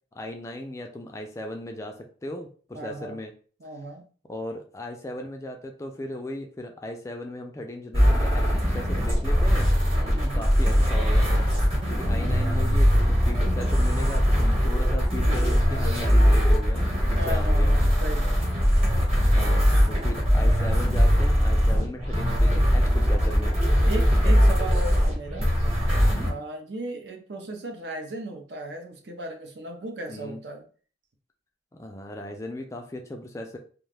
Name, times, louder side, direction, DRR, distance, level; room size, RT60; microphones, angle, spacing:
voice 1, 0.1-3.3 4.3-9.7 10.0-11.3 11.9-17.8 19.2-23.5 24.2-24.4 25.9-26.3 30.1-30.4 31.7-33.6, left 1 dB, 15° left, 3 dB, 0.3 m, -37 dB
voice 2, 2.7-3.2 3.6-4.0 9.9-10.5 12.1-12.4 17.2-18.4 19.7-20.1 23.9-25.5 26.2-30.6, right 2 dB, 65° right, 4 dB, 0.6 m, -36 dB
tb field street, 7.9-26.3, equal, 30° right, 1.1 m, -21 dB
2.4 x 2.2 x 3.2 m, 0.41 s
head